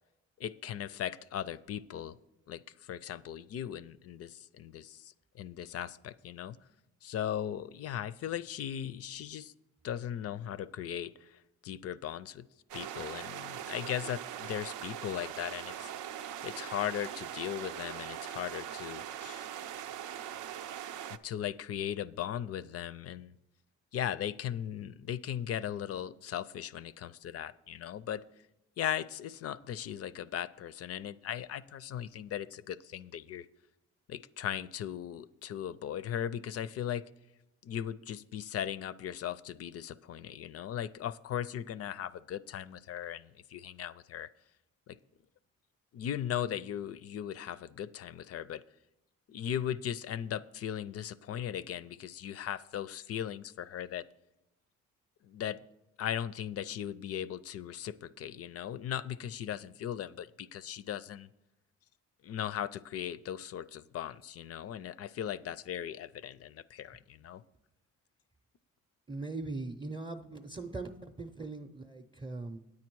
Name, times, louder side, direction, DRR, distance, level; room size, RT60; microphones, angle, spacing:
voice 1, 0.4-2.2 2.5-2.6 2.9-6.6 7.0-9.5 9.8-12.5 12.7-15.9 16.4-19.5 21.1-23.3 23.9-28.2 28.8-33.5 34.1-37.0 37.6-44.3 44.9-45.0 45.9-48.6 49.3-54.0 55.3-55.6 56.0-61.3 62.2-67.4, left 10 dB, 55° left, 16 dB, 0.4 m, -38 dB
sound 1, 12.7-21.2, right 10 dB, 80° right, 0.5 m, -41 dB
voice 2, 69.1-72.6, right 3 dB, 15° right, 3 dB, 0.6 m, -40 dB
9.6 x 8.5 x 4.6 m, 0.90 s
cardioid pair, 90°, 30 cm